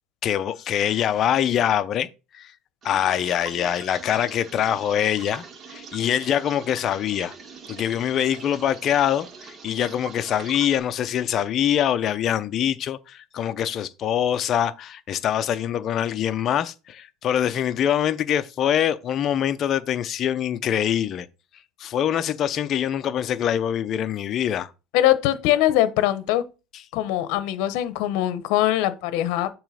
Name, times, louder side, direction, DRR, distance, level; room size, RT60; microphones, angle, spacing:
voice 1, 0.2-2.1 2.3-2.5 2.8-7.3 7.7-21.3 21.8-24.7, left 10 dB, 35° left, 0.6 m, -24 dB
sound 1, 2.8-10.8, right 5 dB, 30° right, 0.8 m, -42 dB
voice 2, 24.9-26.4 26.9-29.5, left 13 dB, 65° left, 0.8 m, -22 dB
7.2 x 3.1 x 5.0 m
cardioid pair, 145°, 0 cm